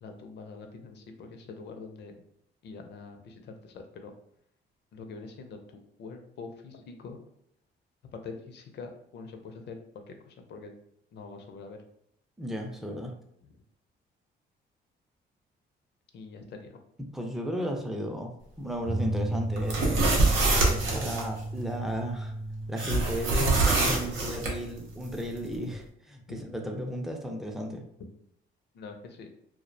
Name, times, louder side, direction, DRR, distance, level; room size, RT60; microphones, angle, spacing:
voice 1, 0.0-2.1 2.6-3.3 3.6-4.1 4.9-5.6 6.0-7.2 8.1-10.7 11.1-11.8 16.1-16.7 20.5-20.7 26.4-26.5 28.7-29.3, left 4 dB, 60° left, 5 dB, 0.5 m, -44 dB
voice 2, 12.4-13.1 17.0-18.3 18.6-20.0 20.9-22.3 22.7-27.8, equal, ahead, 2 dB, 0.4 m, -34 dB
sound 1, 18.9-25.8, right 1 dB, 25° right, 0.8 m, -35 dB
sound 2, 19.6-21.2 22.8-24.5, right 3 dB, 80° right, 0.7 m, -25 dB
2.3 x 2.1 x 2.5 m, 0.71 s
cardioid pair, 90°, 20 cm